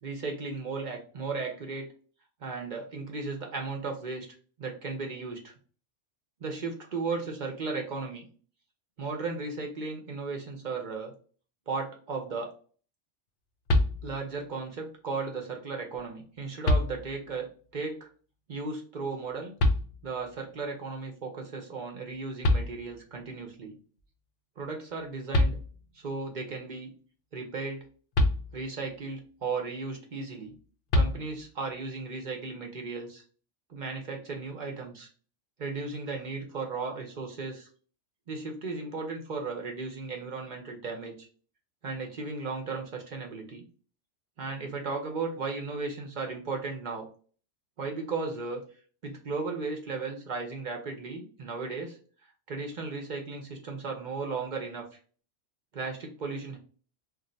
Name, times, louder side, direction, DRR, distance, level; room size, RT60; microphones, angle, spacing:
voice 1, 0.0-1.9 2.4-4.3 4.6-5.5 6.4-8.2 9.0-11.1 11.7-12.5 14.0-17.5 17.7-18.1 18.5-19.5 20.0-23.7 24.6-25.6 25.9-26.9 27.3-27.8 28.5-30.5 30.9-33.2 33.7-35.1 35.6-37.7 38.3-41.3 41.8-43.6 44.4-47.1 47.8-48.6 49.0-52.0 52.5-54.9 55.7-56.6, right 4 dB, 50° right, 2 dB, 0.7 m, -35 dB
sound 1, 13.7-14.4 15.9-16.0 16.6-17.4 19.6-20.3 22.1-22.2 22.4-23.3 25.0-25.1 25.3-26.1 28.1-29.0 30.9-31.7, left 1 dB, 60° left, 0.6 m, -27 dB
2.6 x 2.1 x 3.7 m, 0.41 s
omnidirectional pair, 1.2 m